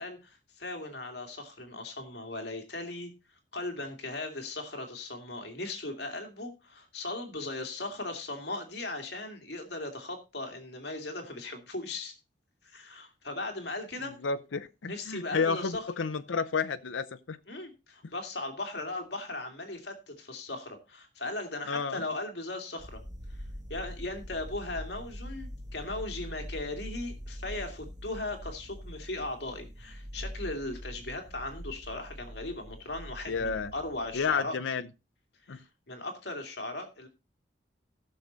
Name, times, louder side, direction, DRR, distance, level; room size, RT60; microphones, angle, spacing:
voice 1, 0.0-3.1 3.5-12.1 12.6-14.1 14.8-15.9 17.5-23.0 23.7-34.6 35.5-37.1, left 2 dB, 60° left, 2.4 m, -38 dB
voice 2, 14.2-17.4 21.7-22.0 33.3-33.7 34.1-34.9 35.5-35.6, left 5 dB, 90° left, 0.6 m, -31 dB
sound 1, 22.8-34.4, equal, 20° right, 1.2 m, -43 dB
15.5 x 6.5 x 4.0 m
head